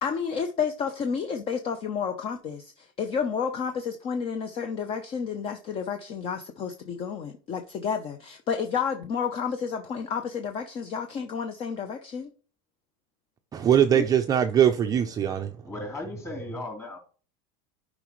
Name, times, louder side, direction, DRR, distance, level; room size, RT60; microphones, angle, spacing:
voice 1, 0.0-12.3 13.9-14.1, left 6 dB, 30° left, 0.7 m, -31 dB
voice 2, 13.5-15.6, right 9 dB, 20° right, 0.5 m, -22 dB
voice 3, 15.6-17.0, left 2 dB, 15° left, 3.3 m, -36 dB
11.0 x 5.1 x 3.1 m
supercardioid pair, 150°, 18 cm